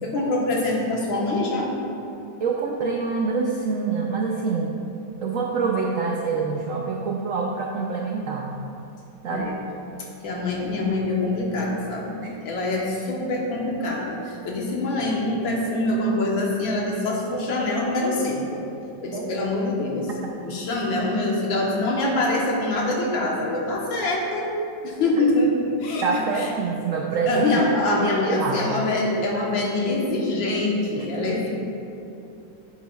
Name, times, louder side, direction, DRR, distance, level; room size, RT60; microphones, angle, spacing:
voice 1, 0.0-1.7 9.3-9.5 10.2-18.6 19.0-20.1 20.4-24.5 24.8-26.1 26.3-26.5 27.3-31.5, left 2 dB, 85° left, -2 dB, 1.9 m, -24 dB
voice 2, 2.4-4.7 5.2-8.5 9.2-9.5 12.2-12.3 19.1-19.3 26.0-27.6 28.0-28.7 31.0-31.1, right 5 dB, 80° right, 0 dB, 0.7 m, -26 dB
9.3 x 8.5 x 2.4 m, 2.7 s
omnidirectional pair, 2.1 m